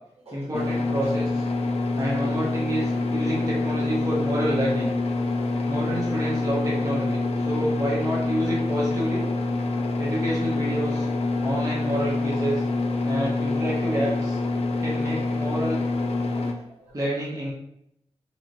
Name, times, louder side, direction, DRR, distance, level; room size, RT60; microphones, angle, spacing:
voice 1, 0.3-1.3 2.0-4.9 5.7-9.2 10.0-11.1 11.4-12.6 13.0-14.4 14.8-15.8 16.9-17.5, right 1 dB, 30° right, -6 dB, 1.1 m, -28 dB
sound 1, 0.5-16.5, left 2 dB, 65° left, 0.4 m, -26 dB
voice 2, 1.7-2.1 2.8-2.9 5.6-6.0 11.0-11.7 12.7-12.8 13.3-13.4 14.0-14.1 16.2-17.0, right 1 dB, 60° right, -6 dB, 1.3 m, -45 dB
3.0 x 2.8 x 2.6 m, 0.76 s
cardioid pair, 50°, 11 cm